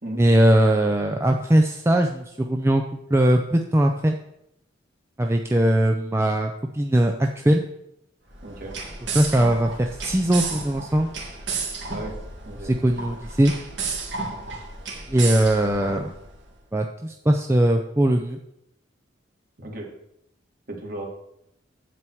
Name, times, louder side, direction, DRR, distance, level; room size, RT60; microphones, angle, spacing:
voice 1, 0.2-2.8 3.1-4.2 5.2-7.6 9.1-11.1 12.6-13.5 15.1-16.1 16.7-18.4, right 1 dB, 15° right, 3 dB, 0.5 m, -20 dB
sound 1, 8.3-16.4, right 4 dB, 70° right, 2.2 m, -33 dB
voice 2, 8.4-8.8 11.9-12.2 12.5-12.7 19.6-19.9 20.7-21.1, right 1 dB, 50° right, 0 dB, 2.1 m, -35 dB
9.0 x 7.8 x 4.6 m, 0.78 s
head